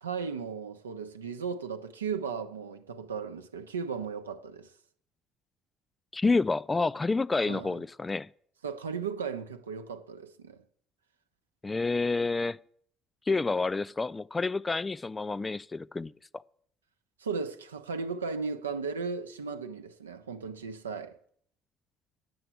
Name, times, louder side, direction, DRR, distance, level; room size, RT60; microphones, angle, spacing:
voice 1, 0.0-4.7 7.5-7.8 8.6-10.6 17.2-21.2, right 5 dB, 80° right, 0.6 m, -36 dB
voice 2, 6.1-8.3 11.6-12.6 13.3-16.4, left 3 dB, 20° left, 0.3 m, -29 dB
8.8 x 7.7 x 8.3 m
figure-of-eight pair, 55°, 0 cm